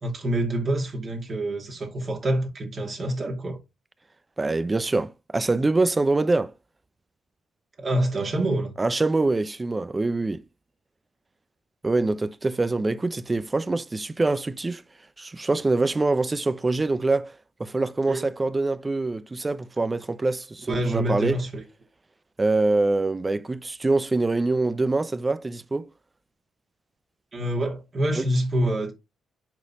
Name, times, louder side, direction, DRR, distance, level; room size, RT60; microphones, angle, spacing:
voice 1, 0.0-3.6 7.8-8.7 18.1-18.2 20.7-21.6 27.3-28.9, right 1 dB, 45° right, 2.6 m, -26 dB
voice 2, 4.4-6.5 8.8-10.4 11.8-14.8 15.2-21.4 22.4-25.9 28.2-28.3, right 3 dB, 25° right, 0.6 m, -24 dB
10.0 x 4.1 x 3.0 m
hypercardioid pair, 50°, 0 cm